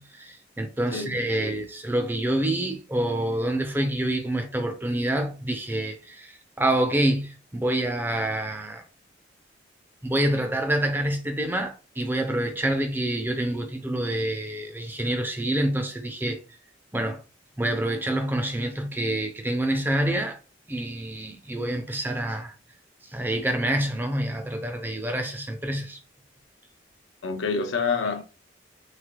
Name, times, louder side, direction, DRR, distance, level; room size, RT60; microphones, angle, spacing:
voice 1, 0.0-8.8 10.0-16.4 16.9-17.2 17.6-20.4 20.7-22.5 23.1-26.0, right 1 dB, 10° right, 0.5 m, -27 dB
voice 2, 0.9-1.7 27.2-28.2, left 4 dB, 80° left, 0.6 m, -28 dB
3.3 x 3.2 x 2.2 m
head